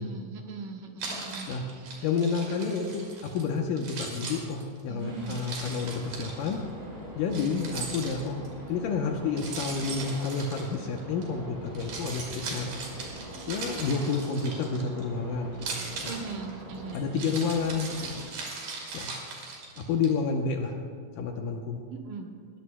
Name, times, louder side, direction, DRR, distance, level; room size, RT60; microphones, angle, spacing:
voice 1, 0.0-2.1 4.9-5.4 7.5-7.6 16.0-17.0 21.9-22.3, right 4 dB, 70° right, 1 dB, 2.7 m, -40 dB
Keys jangling, 1.0-3.4 3.8-6.5 7.3-8.5 9.4-11.2 11.7-15.0 15.5-20.1, right 4 dB, 85° right, 4.5 m, -39 dB
voice 2, 2.0-3.0 3.3-6.6 7.2-8.4 8.7-12.7 13.5-15.6 16.0-16.1 16.9-18.1 18.9-19.1 19.8-20.8 21.2-21.8, left 5 dB, 75° left, 2 dB, 2.4 m, -30 dB
sound 1, 5.0-18.2, right 1 dB, 45° right, 5.3 m, -44 dB
20.5 x 16.0 x 2.2 m, 2.2 s
omnidirectional pair, 4.1 m